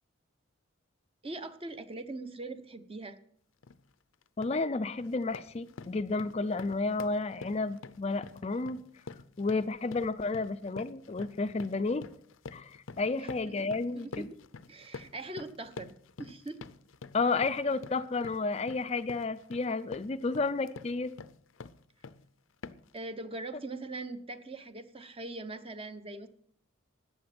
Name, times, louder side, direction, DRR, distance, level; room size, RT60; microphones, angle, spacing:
voice 1, 1.2-3.2 13.2-13.7 13.9-14.3 14.7-15.9 16.2-16.6 22.9-26.3, right 2 dB, 30° right, 10 dB, 0.9 m, -41 dB
sound 1, 3.6-3.8 4.2-4.6 5.0-22.3 22.6-23.0, left 4 dB, 80° left, 0.6 m, -47 dB
voice 2, 4.4-8.8 9.4-12.1 12.5-14.3 17.1-21.1, left 3 dB, 30° left, 11 dB, 0.4 m, -31 dB
14.5 x 9.4 x 6.0 m, 0.65 s
head